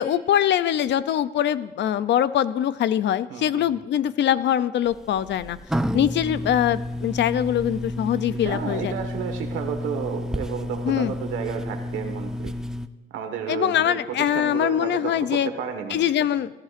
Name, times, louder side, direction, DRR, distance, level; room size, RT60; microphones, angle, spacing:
voice 1, 0.0-5.6 5.9-8.9 10.8-11.1 13.5-15.5 15.9-16.5, left 10 dB, 65° left, 15 dB, 0.5 m, -23 dB
voice 2, 3.3-3.7 8.4-12.5 13.1-16.0, right 7 dB, 90° right, 5 dB, 1.5 m, -32 dB
sound 1, 4.9-12.9, left 1 dB, 5° right, 0.5 m, -31 dB
17.5 x 13.0 x 2.5 m, 1.1 s
cardioid pair, 90°, 20 cm